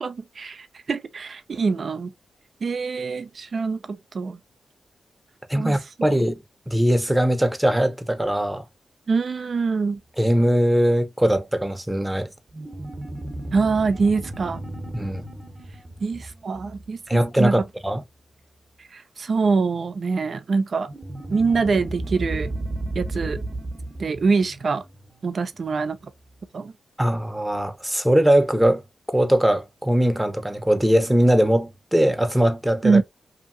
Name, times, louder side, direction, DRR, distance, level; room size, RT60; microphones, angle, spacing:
voice 1, 0.0-2.1 2.6-4.4 5.5-5.8 9.1-10.0 13.5-14.6 16.0-17.6 18.9-20.9 21.3-22.5 22.9-23.4 24.0-24.8 25.2-26.0 26.5-26.7 32.8-33.0, right 4 dB, 60° right, 0.5 m, -24 dB
voice 2, 5.5-6.4 6.7-8.6 10.2-12.3 14.9-15.2 17.1-18.0 27.0-28.8 29.1-33.0, equal, 10° right, 0.8 m, -20 dB
sound 1, 12.5-17.5 20.9-25.8, right 2 dB, 35° right, 1.0 m, -34 dB
2.8 x 2.6 x 2.5 m
cardioid pair, 50°, 0 cm